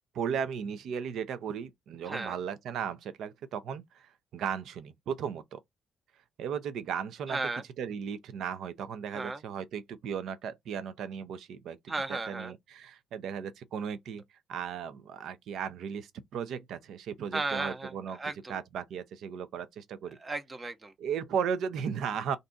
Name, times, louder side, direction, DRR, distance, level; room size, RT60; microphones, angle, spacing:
voice 1, 0.1-5.6 6.4-7.4 7.8-11.9 12.3-14.2 14.5-18.2 18.5-20.2 21.0-22.4, right 7 dB, 75° right, 0.5 m, -36 dB
voice 2, 2.1-2.4 7.3-7.6 9.1-9.4 11.9-12.5 17.3-18.5 20.2-20.9, right 3 dB, 25° right, 0.7 m, -35 dB
2.5 x 2.3 x 3.8 m
cardioid pair, 90°, 0 cm